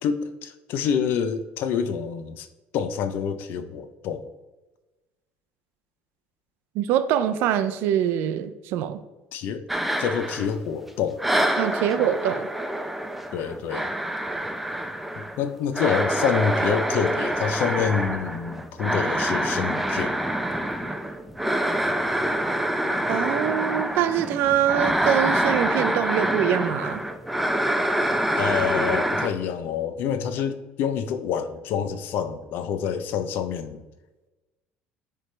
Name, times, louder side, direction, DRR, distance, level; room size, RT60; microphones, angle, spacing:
voice 1, 0.0-2.5 2.7-4.3 9.3-9.7 10.0-11.3 13.3-13.9 15.2-20.2 28.4-33.8, left 7 dB, 60° left, 10 dB, 0.5 m, -27 dB
voice 2, 6.7-9.0 11.6-12.5 23.1-27.0, right 10 dB, 70° right, 11 dB, 0.5 m, -24 dB
sound 1, 9.7-10.9 11.2-29.3, right 1 dB, 5° right, 0.3 m, -26 dB
10.0 x 3.4 x 3.2 m, 1.1 s
cardioid pair, 155°, 4 cm